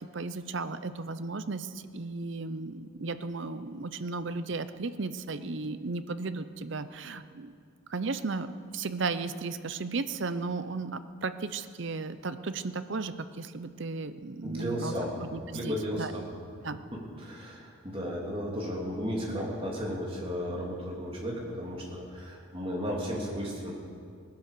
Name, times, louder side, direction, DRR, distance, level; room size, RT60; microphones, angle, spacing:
voice 1, 0.1-7.5 7.9-14.9 15.2-16.1 16.6-16.8, right 3 dB, 60° right, 12 dB, 0.6 m, -35 dB
voice 2, 14.4-15.1 15.5-16.3 17.2-23.7, equal, 25° right, -3 dB, 3.0 m, -34 dB
19.0 x 10.5 x 6.8 m, 2.3 s
head